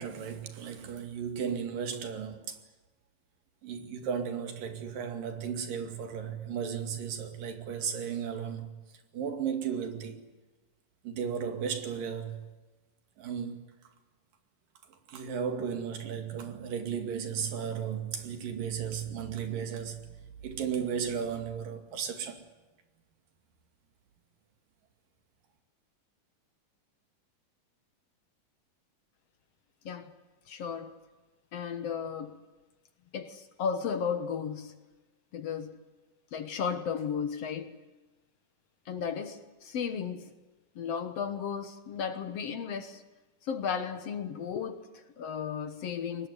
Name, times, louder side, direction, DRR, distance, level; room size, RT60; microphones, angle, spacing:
voice 1, 0.0-2.6 3.6-8.8 9.1-10.2 11.0-12.5 13.2-13.7 15.1-20.1 20.4-22.4, right 7 dB, 90° right, 4.1 m, -35 dB
voice 2, 30.5-30.9 31.5-32.4 33.1-34.8 35.3-35.8 36.3-37.8 38.9-40.3 40.8-43.0 43.4-46.3, left 7 dB, 60° left, 2.0 m, -34 dB
23.0 x 20.0 x 9.6 m
omnidirectional pair, 3.8 m